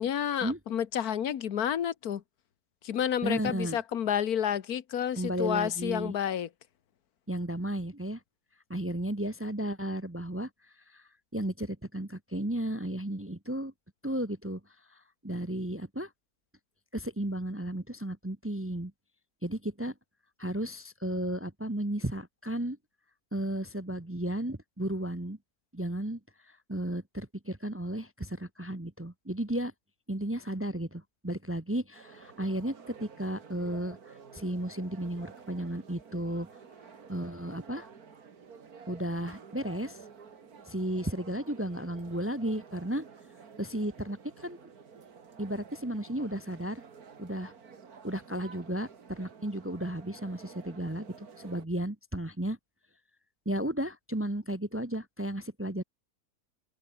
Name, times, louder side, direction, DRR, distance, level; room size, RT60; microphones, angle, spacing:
voice 1, 0.0-2.2 2.8-6.5, left 9 dB, 80° left, 1.6 m, -30 dB
voice 2, 3.2-3.8 5.2-6.2 7.3-8.2 8.7-10.5 10.9-11.0 11.3-13.7 14.0-14.6 14.9-15.0 15.2-16.1 16.9-18.9 19.4-19.9 20.4-22.8 23.3-25.4 25.7-26.2 26.5-29.7 30.1-34.0 34.3-36.5 37.1-37.9 38.9-40.0 40.7-43.0 43.6-44.6 45.4-46.8 47.2-47.5 48.0-52.6 53.5-55.8, right 1 dB, 10° right, 0.8 m, -34 dB
sound 1, 31.9-51.7, right 6 dB, 80° right, 2.4 m, -51 dB
omnidirectional pair, 1.6 m